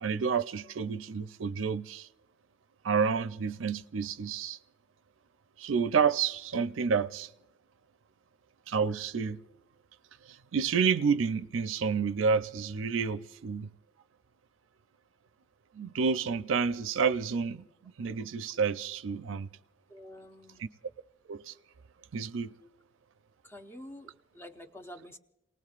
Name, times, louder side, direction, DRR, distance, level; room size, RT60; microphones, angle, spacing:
voice 1, 0.0-2.1 2.8-4.6 5.6-7.3 8.7-9.4 10.2-13.7 15.7-19.5 20.6-20.7 21.3-21.5 22.1-22.5, right 6 dB, 90° right, 0.5 m, -29 dB
voice 2, 19.9-20.6 23.4-25.2, left 1 dB, 10° left, 0.6 m, -48 dB
29.5 x 19.0 x 2.4 m
head